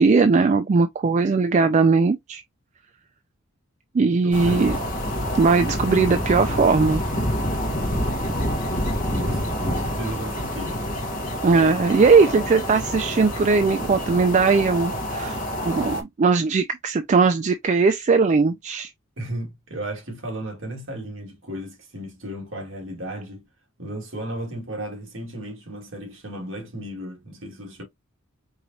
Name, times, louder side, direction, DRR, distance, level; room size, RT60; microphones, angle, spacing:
voice 1, 0.0-2.4 3.9-4.8 5.4-7.0 11.4-18.9, right 4 dB, 35° right, 0.3 m, -19 dB
voice 2, 4.2-4.9 9.1-10.8 19.2-23.5 23.8-27.8, right 1 dB, 60° right, 1.9 m, -35 dB
An evening on a field, 4.3-16.0, equal, 40° left, 1.1 m, -27 dB
4.7 x 2.9 x 2.6 m
head